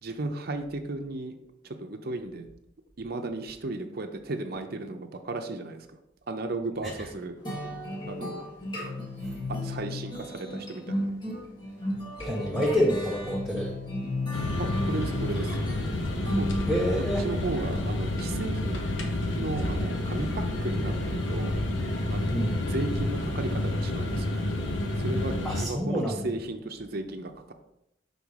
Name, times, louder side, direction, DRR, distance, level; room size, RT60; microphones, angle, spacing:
voice 1, 0.0-1.4 1.6-2.5 3.0-5.9 6.3-7.4 8.0-8.4 9.5-11.1 14.6-15.6 16.4-16.5 17.2-18.8 19.4-21.5 22.1-22.4 22.7-24.4 25.0-27.5, right 2 dB, 55° right, 5 dB, 0.6 m, -35 dB
sound 1, 7.5-17.1, left 1 dB, 25° left, 1.4 m, -34 dB
voice 2, 12.2-13.7 16.7-17.2 22.3-22.6 25.4-26.2, equal, ahead, -3 dB, 0.7 m, -27 dB
sound 2, 14.3-25.7, left 1 dB, 80° left, 1.0 m, -29 dB
5.6 x 3.8 x 4.8 m, 0.82 s
head